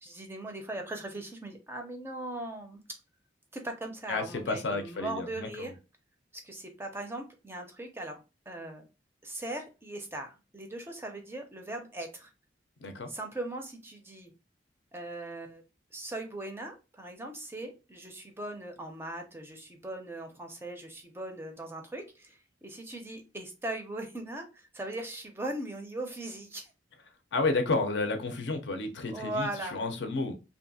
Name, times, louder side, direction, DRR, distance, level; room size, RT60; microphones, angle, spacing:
voice 1, 0.0-2.8 3.5-5.7 6.3-8.2 8.5-8.8 9.2-12.3 13.1-14.3 14.9-15.6 15.9-26.7 29.1-29.8, right 1 dB, 15° right, 0.4 m, -39 dB
voice 2, 4.1-5.7 12.8-13.1 27.3-30.3, left 3 dB, 75° left, 0.5 m, -31 dB
2.7 x 2.3 x 2.6 m
head